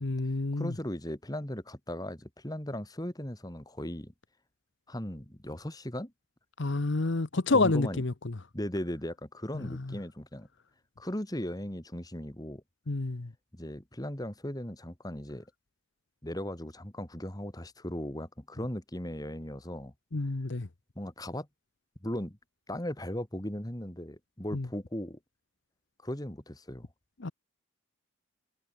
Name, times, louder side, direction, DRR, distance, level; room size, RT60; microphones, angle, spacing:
voice 1, 0.0-0.7 6.6-8.3 9.5-9.9 12.9-13.3 20.1-20.7 24.5-24.7 27.2-27.3, left 3 dB, 55° left, 0.9 m, -29 dB
voice 2, 0.5-4.1 4.9-6.1 7.5-8.0 8.5-10.5 11.0-12.6 13.5-15.5 16.2-19.9 21.0-21.5 22.0-22.4 22.7-25.2 26.0-26.9, left 1 dB, 15° left, 2.0 m, -37 dB
head